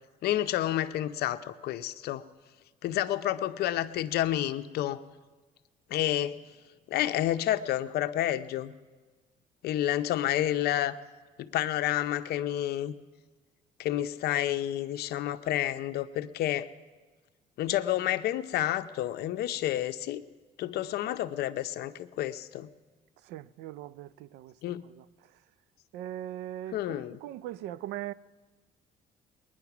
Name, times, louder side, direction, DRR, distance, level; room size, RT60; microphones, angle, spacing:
voice 1, 0.2-2.2 2.8-5.0 5.9-6.4 6.9-8.7 9.6-11.0 11.4-12.9 13.8-16.7 17.6-20.2 20.6-22.7 24.6-24.8 26.7-27.2, left 13 dB, 70° left, 0.7 m, -29 dB
voice 2, 23.2-24.5 24.8-25.0 25.9-28.1, right 13 dB, 85° right, 0.4 m, -40 dB
20.5 x 10.0 x 5.9 m
cardioid pair, 110°, 17 cm